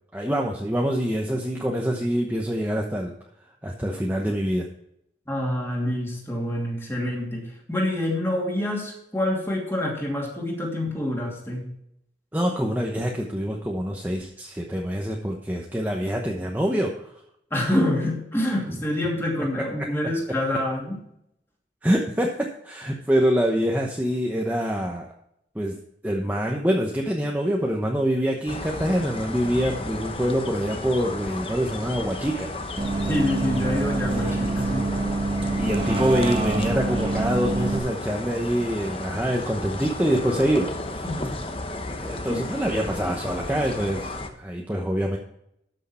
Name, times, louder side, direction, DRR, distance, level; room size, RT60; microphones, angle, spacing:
voice 1, 0.1-3.1 3.6-4.7 12.3-17.1 18.7-18.8 19.8-19.9 21.8-25.1 25.5-25.8 26.0-32.5 32.9-33.1 34.1-34.4 35.4-41.0 42.0-45.2, equal, 10° right, 0 dB, 0.9 m, -25 dB
voice 2, 5.3-11.7 17.5-21.0 33.0-34.9 41.0-41.3 42.3-42.4, left 1 dB, 15° left, -1 dB, 2.7 m, -26 dB
sound 1, 28.5-44.3, left 2 dB, 30° left, 1.0 m, -34 dB
Bus, 32.8-37.8, right 2 dB, 30° right, 1.4 m, -26 dB
13.0 x 6.5 x 4.4 m, 0.75 s
head